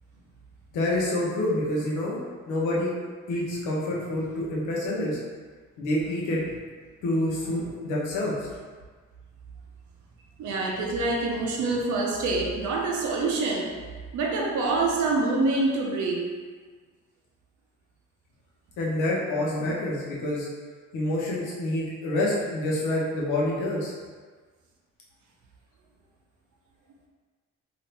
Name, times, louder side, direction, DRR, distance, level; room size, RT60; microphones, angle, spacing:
voice 1, 0.7-2.2 2.5-2.9 3.3-5.2 5.8-6.4 7.0-8.5 18.8-20.5 20.9-23.9, left 1 dB, 90° left, -5 dB, 0.9 m, -27 dB
voice 2, 10.4-13.8 14.1-16.4 19.6-19.7, right 3 dB, 75° right, 0 dB, 0.7 m, -26 dB
2.7 x 2.6 x 3.3 m, 1.5 s
cardioid pair, 90°, 30 cm